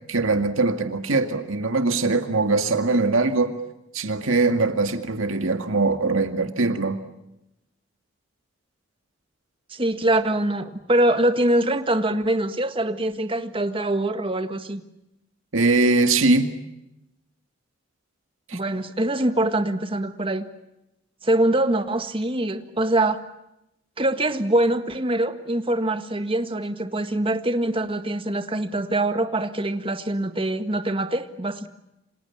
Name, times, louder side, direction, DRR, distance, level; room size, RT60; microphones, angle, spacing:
voice 1, 0.1-3.5 3.9-7.0 15.5-16.6 18.5-18.6, right 3 dB, 85° right, 7 dB, 2.1 m, -21 dB
voice 2, 9.7-14.8 18.5-20.5 21.2-23.2 24.0-31.7, right 1 dB, 25° right, 8 dB, 1.7 m, -24 dB
29.0 x 26.5 x 7.3 m, 0.88 s
head